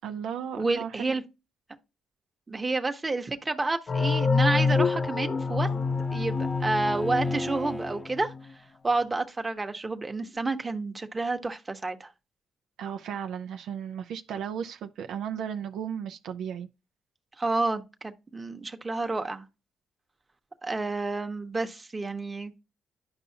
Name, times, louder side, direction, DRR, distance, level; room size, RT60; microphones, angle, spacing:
voice 1, 0.0-1.2 12.8-16.7, right 8 dB, 80° right, 0.5 m, -35 dB
voice 2, 0.6-1.2 2.5-5.7 6.1-8.3 8.8-12.1 17.4-19.4 20.6-22.6, right 3 dB, 20° right, 1.0 m, -30 dB
sound 1, 3.9-8.4, left 4 dB, 45° left, 0.5 m, -27 dB
Bowed string instrument, 4.5-8.1, equal, 5° left, 0.7 m, -38 dB
10.5 x 5.5 x 2.8 m
cardioid pair, 90°, 0 cm